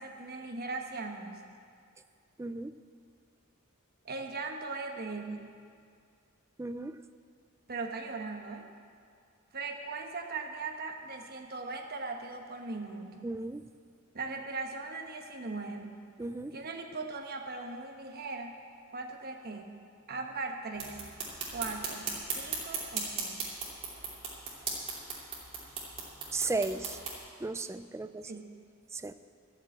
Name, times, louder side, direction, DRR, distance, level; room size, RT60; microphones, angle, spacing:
voice 1, 0.0-1.3 4.0-5.5 7.7-8.7 9.5-13.4 14.1-16.0 16.5-18.6 18.9-19.7 20.1-21.1 21.5-23.5 28.2-28.5, right 3 dB, 45° right, 3 dB, 1.2 m, -39 dB
voice 2, 2.4-2.7 6.6-6.9 13.2-13.6 16.2-16.5 26.3-27.0 27.4-28.2 28.9-29.1, right 3 dB, 15° right, 11 dB, 0.3 m, -34 dB
sound 1, 20.7-27.2, right 4 dB, 30° right, 2.7 m, -38 dB
13.0 x 7.3 x 8.5 m, 2.2 s
head